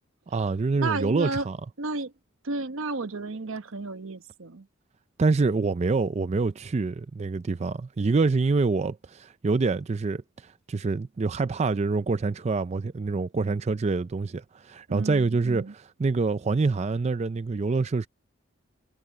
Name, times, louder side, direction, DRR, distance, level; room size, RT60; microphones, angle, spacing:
voice 1, 0.3-1.6 5.2-18.1, right 3 dB, 30° right, 0.4 m, -26 dB
voice 2, 0.8-1.5 1.8-2.1 2.4-4.7 14.9-15.7, right 3 dB, 75° right, 1.0 m, -32 dB
head